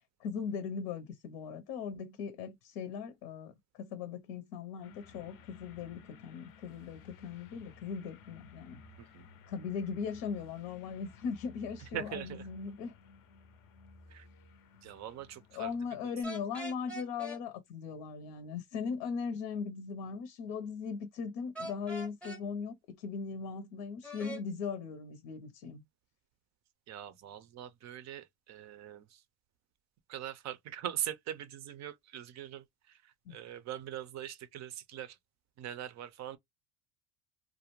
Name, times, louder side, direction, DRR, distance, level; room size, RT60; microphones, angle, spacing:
voice 1, 0.2-8.8 9.5-12.9 15.5-25.8 33.3-33.4, left 6 dB, 75° left, 0.7 m, -39 dB
sound 1, 4.8-16.2, left 4 dB, 45° left, 0.5 m, -56 dB
voice 2, 11.9-12.5 14.1-14.3 14.8-15.7 16.0-16.1 26.9-29.2 30.1-35.2 35.6-36.4, right 11 dB, 40° right, 0.4 m, -42 dB
sound 2, 16.2-17.4 21.5-22.4 24.0-24.4, right 1 dB, 5° left, 0.7 m, -42 dB
2.4 x 2.1 x 2.9 m
supercardioid pair, 110°, 48 cm